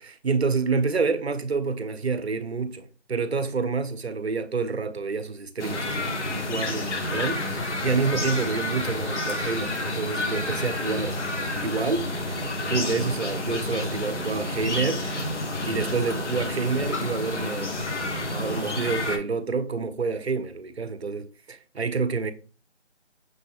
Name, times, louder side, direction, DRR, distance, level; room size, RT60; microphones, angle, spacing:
voice 1, 0.0-11.2 11.6-12.1 12.7-15.3 15.6-17.7 18.3-22.3, right 4 dB, 60° right, 0.6 m, -28 dB
sound 1, 5.6-19.2, left 2 dB, 75° left, 1.0 m, -29 dB
6.1 x 2.0 x 3.4 m
figure-of-eight pair, 170°, 35 cm